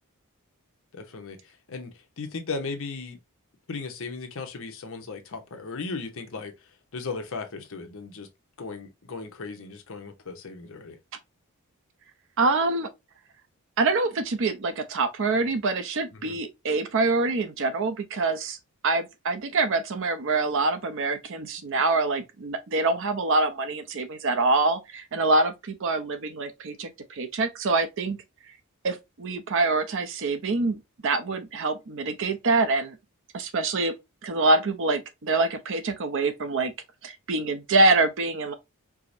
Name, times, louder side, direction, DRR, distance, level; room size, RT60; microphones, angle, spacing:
voice 1, 0.9-1.9 2.2-3.2 3.7-6.5 6.9-8.3 8.6-11.0 16.1-16.4, left 4 dB, 60° left, 0.7 m, -36 dB
voice 2, 12.4-12.9 13.8-18.6 18.8-28.2 28.8-33.0 33.3-33.9 34.2-36.7 37.0-38.5, right 3 dB, 60° right, 0.6 m, -25 dB
4.6 x 2.0 x 2.5 m
head